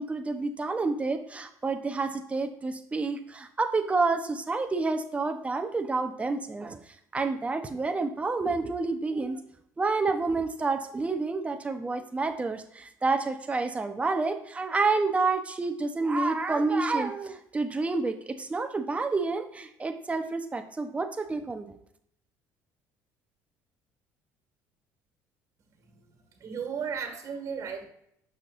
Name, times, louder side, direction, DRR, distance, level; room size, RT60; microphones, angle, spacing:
voice 1, 0.0-6.8 7.1-9.4 9.8-21.8, right 3 dB, 20° right, 7 dB, 0.8 m, -29 dB
voice 2, 26.4-27.9, right 6 dB, 45° right, 4 dB, 1.8 m, -34 dB
6.6 x 6.4 x 2.5 m, 0.72 s
cardioid pair, 100°, 7 cm